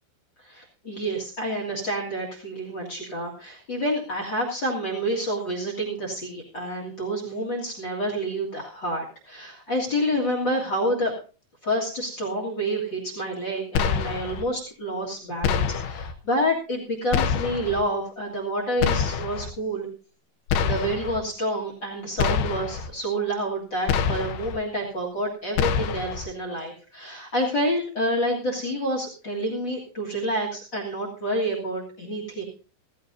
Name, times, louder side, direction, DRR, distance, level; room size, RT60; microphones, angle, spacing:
voice 1, 0.4-11.1 11.6-19.9 20.6-32.4, equal, 55° left, -1 dB, 1.2 m, -28 dB
Mine Blasts, 13.8-14.4 15.4-16.1 17.1-17.8 18.8-19.5 20.5-21.2 22.2-22.9 23.9-24.6 25.6-26.3, left 7 dB, 80° left, 2.4 m, -25 dB
16.0 x 15.0 x 2.7 m, 0.37 s
omnidirectional pair, 5.4 m